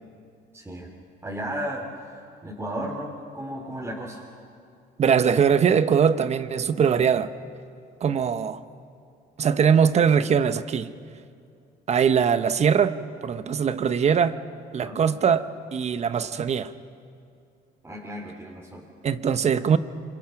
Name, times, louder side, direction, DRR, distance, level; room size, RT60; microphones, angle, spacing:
voice 1, 0.5-0.9 1.2-2.1 2.4-4.2 14.8-15.0 17.8-18.8, right 1 dB, 15° right, 3.6 m, -34 dB
voice 2, 5.0-7.3 8.0-8.6 9.4-10.9 11.9-13.0 13.2-14.4 14.7-16.7 19.0-19.8, right 7 dB, 40° right, 1.0 m, -21 dB
27.0 x 25.5 x 6.0 m
cardioid pair, 110°, 17 cm